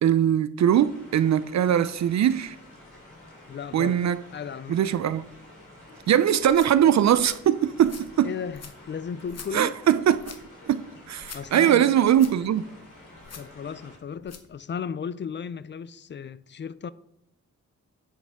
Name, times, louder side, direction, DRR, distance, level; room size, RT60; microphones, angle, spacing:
voice 1, 0.0-2.6 3.7-4.2 4.7-5.2 6.1-8.3 9.5-10.4 10.7-12.6, right 10 dB, 65° right, 0.4 m, -21 dB
sound 1, 0.6-14.0, left 1 dB, 85° left, 3.3 m, -50 dB
voice 2, 3.5-4.0 4.3-4.8 8.2-9.7 11.3-12.0 13.3-16.9, left 7 dB, 40° left, 0.4 m, -35 dB
sound 2, 6.3-14.5, left 5 dB, 55° left, 1.0 m, -48 dB
9.7 x 7.5 x 3.5 m
wide cardioid pair, 115°, 30 cm